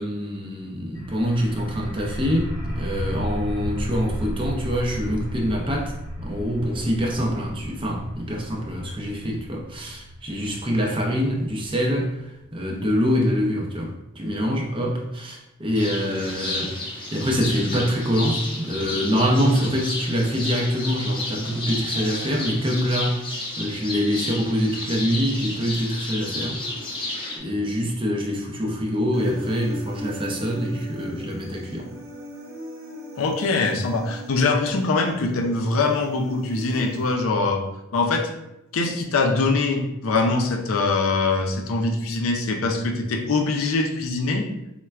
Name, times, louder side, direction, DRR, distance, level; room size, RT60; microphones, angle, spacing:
voice 1, 0.0-16.8 17.1-23.3 23.6-26.6 27.4-31.9, equal, 25° right, -1 dB, 0.5 m, -25 dB
sound 1, 0.9-12.4, equal, 40° left, 0.9 m, -33 dB
sound 2, 15.7-27.4, left 2 dB, 25° left, 0.5 m, -32 dB
Human voice, 29.1-37.1, right 1 dB, 85° right, 0.7 m, -39 dB
voice 2, 33.2-37.6 37.9-38.3 38.7-44.5, left 3 dB, 75° left, 3 dB, 0.4 m, -23 dB
4.2 x 2.1 x 2.3 m, 0.88 s
head